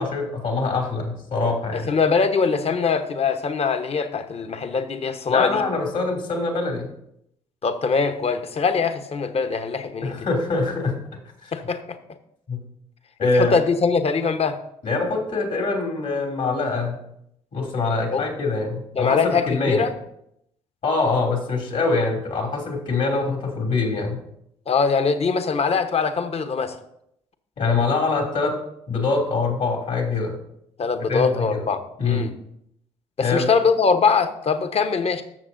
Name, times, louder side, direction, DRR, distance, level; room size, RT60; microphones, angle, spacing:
voice 1, 0.0-1.9 5.3-6.9 10.0-11.0 11.4-11.5 12.5-12.6 13.2-13.5 14.8-17.0 17.5-19.9 20.8-24.2 27.6-28.6 28.9-30.4 31.1-31.6 32.0-32.3 33.2-33.5, left 3 dB, 60° left, 1 dB, 2.6 m, -24 dB
voice 2, 1.7-5.6 7.6-10.2 11.5-12.0 13.2-14.6 18.1-18.2 18.9-19.9 24.7-26.8 30.8-32.3 33.2-35.2, left 5 dB, 45° left, 9 dB, 1.0 m, -22 dB
13.5 x 6.7 x 2.6 m, 0.76 s
hypercardioid pair, 45°, 15 cm